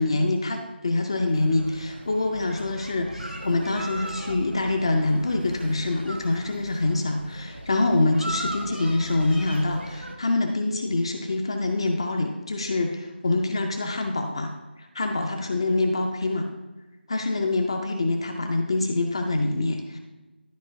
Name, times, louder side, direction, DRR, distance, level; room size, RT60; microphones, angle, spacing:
voice 1, 0.0-14.5 14.8-16.5 17.1-20.0, left 2 dB, 25° left, 4 dB, 0.4 m, -25 dB
sound 1, 1.3-10.1, right 1 dB, 85° right, 1.4 m, -38 dB
12.0 x 4.3 x 2.6 m, 1.2 s
figure-of-eight pair, 160°, 6 cm